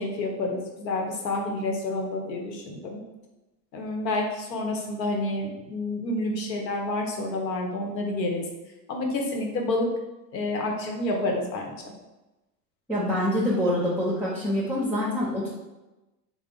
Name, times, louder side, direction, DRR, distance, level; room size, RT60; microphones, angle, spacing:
voice 1, 0.0-3.0 3.7-8.4 8.9-9.9 10.3-11.9, left 2 dB, 80° left, 1 dB, 0.9 m, -29 dB
voice 2, 12.9-15.5, left 1 dB, 5° right, -6 dB, 0.7 m, -25 dB
3.5 x 2.0 x 3.7 m, 1.0 s
hypercardioid pair, 85°, 49 cm